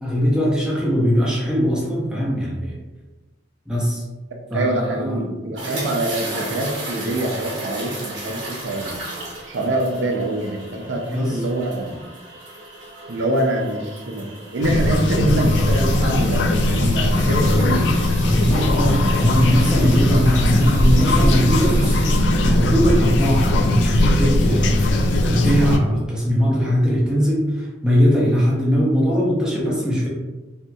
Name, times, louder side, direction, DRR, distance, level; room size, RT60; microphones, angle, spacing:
voice 1, 0.0-2.8 3.7-4.0 4.5-5.2 11.1-11.4 18.3-30.1, equal, 5° right, -6 dB, 0.6 m, -20 dB
voice 2, 4.5-9.0 9.5-12.0 13.1-16.4 16.7-17.9 18.3-18.6, right 1 dB, 90° right, 2 dB, 0.5 m, -24 dB
sound 1, 5.6-22.2, right 2 dB, 70° right, 0.9 m, -36 dB
sound 2, 14.6-25.8, left 1 dB, 70° left, 0.3 m, -18 dB
2.7 x 2.7 x 2.3 m, 1.2 s
head